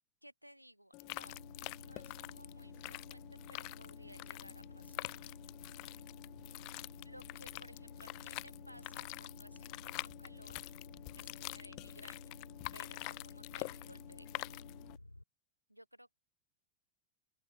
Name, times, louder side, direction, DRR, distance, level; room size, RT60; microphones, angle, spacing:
voice 1, 0.2-5.1 6.5-6.7 7.0-10.6 11.1-12.4 12.7-14.6 15.7-16.1, equal, 90° right, 3.3 m, -59 dB
sound 1, 0.9-15.0, left 30 dB, 45° left, 0.4 m, -46 dB
sound 2, 1.3-15.2, left 1 dB, 85° left, 1.2 m, -54 dB
open air
figure-of-eight pair, 90°, 0 cm